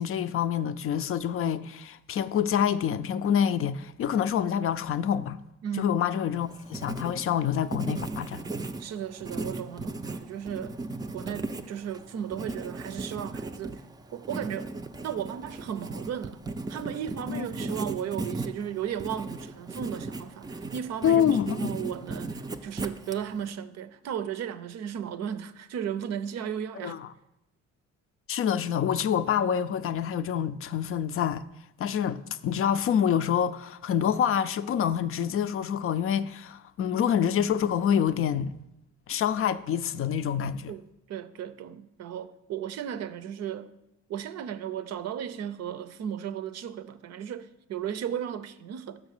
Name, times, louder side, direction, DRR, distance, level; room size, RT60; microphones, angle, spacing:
voice 1, 0.0-5.4 5.8-8.4 17.3-17.5 21.0-21.8 26.8-27.1 28.3-31.4 31.8-38.5 39.1-40.7, left 8 dB, 50° left, 0.4 m, -27 dB
voice 2, 5.6-6.0 8.8-10.8 11.1-13.8 14.1-14.7 15.0-16.4 16.7-27.0 40.7-40.8 41.1-43.7 44.1-49.0, right 9 dB, 60° right, 0.6 m, -35 dB
Writing, 6.3-23.5, right 2 dB, 15° right, 0.4 m, -37 dB
6.1 x 6.1 x 6.5 m
cardioid pair, 110°, 29 cm